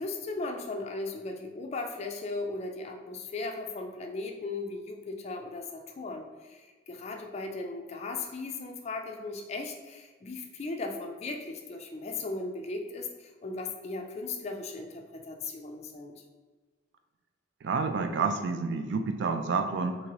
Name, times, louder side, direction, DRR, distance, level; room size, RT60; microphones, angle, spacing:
voice 1, 0.0-16.1, left 3 dB, 35° left, 3 dB, 0.3 m, -37 dB
voice 2, 17.6-20.0, right 4 dB, 65° right, 7 dB, 0.3 m, -29 dB
2.9 x 2.6 x 2.9 m, 1.4 s
head